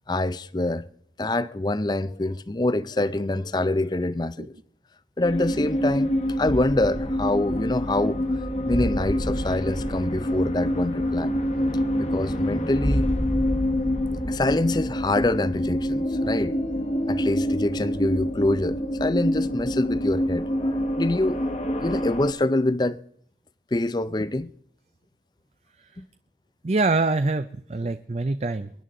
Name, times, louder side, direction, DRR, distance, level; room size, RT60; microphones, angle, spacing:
voice 1, 0.1-0.8 1.2-4.5 5.2-8.2 8.7-11.3 12.0-13.1 14.3-16.5 17.1-21.4 21.8-23.0 23.7-24.5 26.0-26.1, left 2 dB, 25° left, 0.5 m, -25 dB
sound 1, 5.2-22.3, equal, 40° left, 1.3 m, -26 dB
voice 2, 26.6-28.7, right 3 dB, 40° right, 0.5 m, -24 dB
22.5 x 10.5 x 3.8 m
head